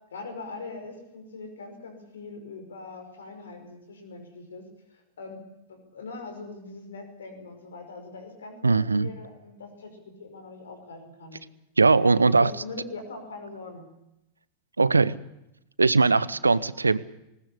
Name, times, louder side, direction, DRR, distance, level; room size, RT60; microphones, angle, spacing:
voice 1, 0.1-5.4 5.7-11.4 11.9-13.9 16.2-16.3, left 3 dB, 65° left, 6 dB, 5.4 m, -42 dB
voice 2, 8.6-9.1 11.8-12.5 14.8-15.2 15.8-17.0, right 3 dB, 80° right, 19 dB, 0.8 m, -20 dB
20.0 x 19.0 x 8.5 m, 0.88 s
figure-of-eight pair, 90°, 0 cm